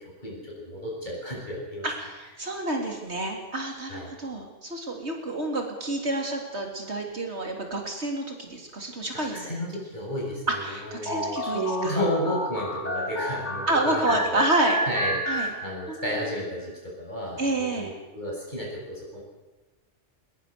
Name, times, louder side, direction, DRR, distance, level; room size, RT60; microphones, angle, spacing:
voice 1, 0.0-1.9 3.9-4.1 9.1-14.4 14.8-19.2, equal, 40° left, -2 dB, 8.2 m, -32 dB
voice 2, 1.8-9.5 10.5-12.0 13.7-14.8 15.3-15.5 15.9-16.3 17.4-17.9, right 2 dB, 70° right, 2 dB, 3.7 m, -29 dB
sound 1, 11.1-16.2, equal, 80° left, 3.2 m, -30 dB
22.0 x 20.5 x 6.9 m, 1.1 s
omnidirectional pair, 1.2 m